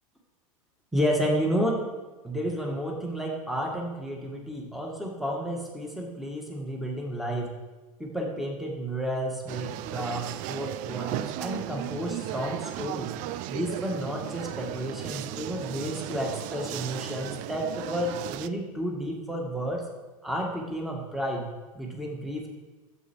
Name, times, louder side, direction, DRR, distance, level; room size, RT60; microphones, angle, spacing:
voice 1, 0.9-1.8 2.2-7.5 8.0-13.1 13.5-19.9 20.2-21.5 21.7-22.5, equal, ahead, -1 dB, 2.2 m, -31 dB
sound 1, 9.5-18.5, right 14 dB, 45° right, 0.5 m, -36 dB
12.0 x 7.8 x 4.7 m, 1.2 s
hypercardioid pair, 100°, 18 cm